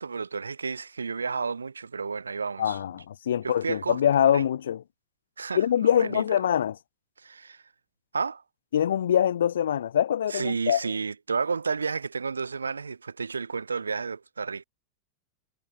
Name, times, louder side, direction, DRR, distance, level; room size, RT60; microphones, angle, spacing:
voice 1, 0.0-2.8 3.4-4.0 4.3-4.4 5.4-6.4 7.2-7.6 8.1-8.4 10.3-14.6, right 5 dB, 75° right, 5.2 m, -31 dB
voice 2, 2.6-4.8 5.5-6.8 8.7-10.8, left 9 dB, 65° left, 0.6 m, -24 dB
figure-of-eight pair, 90°, 0 cm